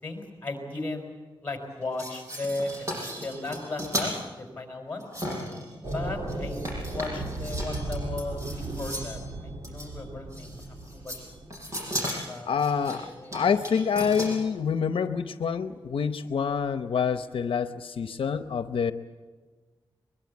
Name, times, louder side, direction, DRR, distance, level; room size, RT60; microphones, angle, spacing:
voice 1, 0.0-1.1 1.4-2.7 3.2-5.0 5.9-10.6 10.9-11.1 12.3-13.4, left 2 dB, 20° left, 3 dB, 5.1 m, -36 dB
sound 1, 1.8-4.1 5.0-6.0 6.3-9.2 9.6-9.9 10.3-11.2 11.5-14.4, equal, 35° right, 6.6 m, -36 dB
sound 2, 5.8-12.0, right 2 dB, 50° right, 2.2 m, -36 dB
voice 2, 12.5-13.1 13.3-18.9, left 6 dB, 90° left, 10 dB, 0.8 m, -27 dB
22.5 x 22.0 x 8.4 m, 1.4 s
wide cardioid pair, 165°, 9 cm